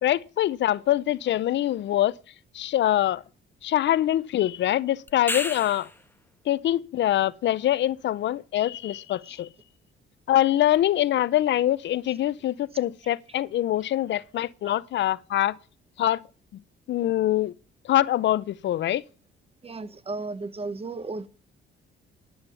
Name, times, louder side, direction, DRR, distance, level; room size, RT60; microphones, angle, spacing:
voice 1, 0.0-2.2 2.5-3.2 3.6-5.9 6.5-9.5 10.3-15.6 16.0-16.2 16.9-17.5 17.8-19.0, left 13 dB, 65° left, 0.6 m, -24 dB
sound 1, 5.1-6.1 10.7-10.8, left 2 dB, 10° left, 1.4 m, -31 dB
voice 2, 19.6-21.3, right 3 dB, 30° right, 1.1 m, -34 dB
11.5 x 8.7 x 5.4 m
cardioid pair, 90°, 20 cm